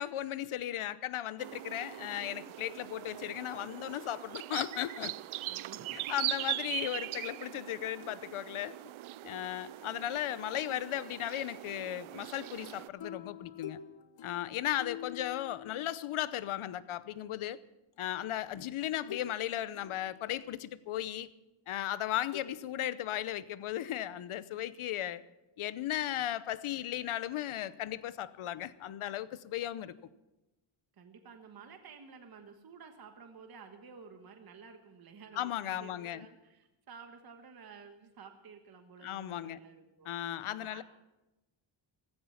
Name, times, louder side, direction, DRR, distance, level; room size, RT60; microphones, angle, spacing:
voice 1, 0.0-5.1 6.1-8.8 9.2-13.8 14.2-17.6 18.0-21.3 21.7-25.2 25.6-29.9 35.4-36.3 39.0-39.6 40.0-40.8, left 12 dB, 80° left, 0.9 m, -36 dB
sound 1, 1.4-12.9, right 15 dB, 75° right, 0.5 m, -41 dB
voice 2, 5.5-6.3 7.5-7.8 9.8-10.1 30.9-40.1 40.6-40.8, right 5 dB, 45° right, 1.4 m, -52 dB
sound 2, 13.0-16.6 18.0-18.1 19.1-19.4 19.7-20.6 22.3-22.5, left 10 dB, 60° left, 1.1 m, -47 dB
15.5 x 14.5 x 5.8 m
wide cardioid pair, 155°, 49 cm